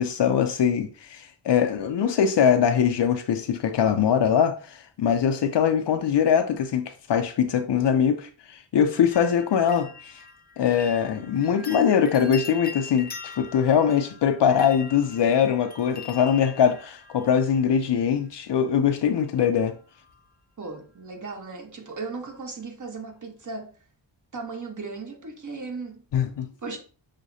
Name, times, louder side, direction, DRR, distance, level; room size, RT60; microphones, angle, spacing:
voice 1, 0.0-10.1 10.6-19.7 26.1-26.5, left 8 dB, 65° left, 0.6 m, -22 dB
sound 1, 9.1-18.0 19.0-19.5 19.8-20.3 20.6-20.7, left 4 dB, 20° left, 0.5 m, -43 dB
voice 2, 20.6-23.7 24.3-26.0 26.6-26.8, right 4 dB, 40° right, 1.0 m, -36 dB
6.2 x 2.2 x 2.7 m
cardioid pair, 60°, 47 cm